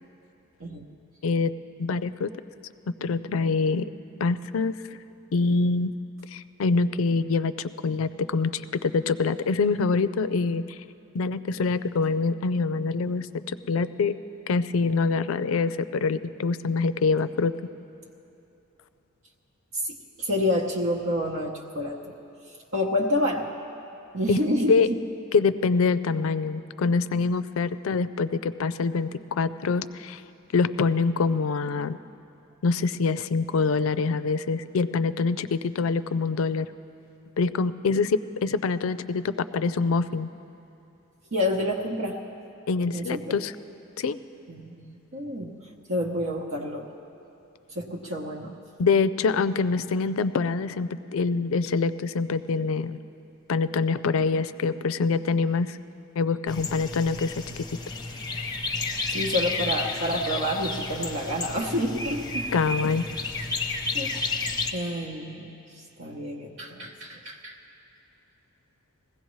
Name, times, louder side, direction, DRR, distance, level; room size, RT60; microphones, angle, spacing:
voice 1, 1.8-2.3 3.0-3.9 4.2-4.8 5.3-5.9 6.3-10.8 11.1-14.1 14.5-17.5 24.3-24.4 24.7-24.9 25.3-30.2 30.5-32.0 32.6-36.7 37.4-40.3 42.7-43.5 44.0-44.2 48.8-53.0 53.5-55.8 56.2-57.7 62.5-63.0, left 4 dB, 90° left, 13 dB, 0.4 m, -25 dB
voice 2, 19.7-22.1 22.5-23.5 24.1-24.8 41.3-42.2 42.9-43.4 44.5-45.6 45.9-46.9 47.7-48.6 59.1-62.5 63.9-64.1 64.7-67.6, left 1 dB, 70° right, -1 dB, 0.9 m, -29 dB
sound 1, 56.5-64.7, left 3 dB, 20° left, 0.7 m, -31 dB
20.5 x 16.0 x 3.1 m, 2.8 s
head